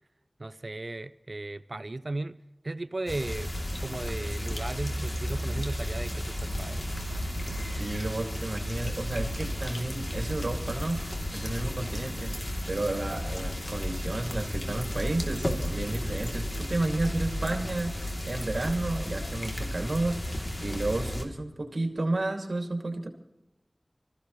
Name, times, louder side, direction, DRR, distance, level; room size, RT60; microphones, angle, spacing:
voice 1, 0.4-2.4 2.6-3.5 3.8-6.9, right 2 dB, 55° right, 0.5 m, -36 dB
sound 1, 3.1-21.2, equal, 40° left, 2.9 m, -33 dB
voice 2, 7.8-23.1, right 2 dB, 75° right, 2.4 m, -32 dB
25.0 x 15.0 x 3.1 m
wide cardioid pair, 55°, 0 cm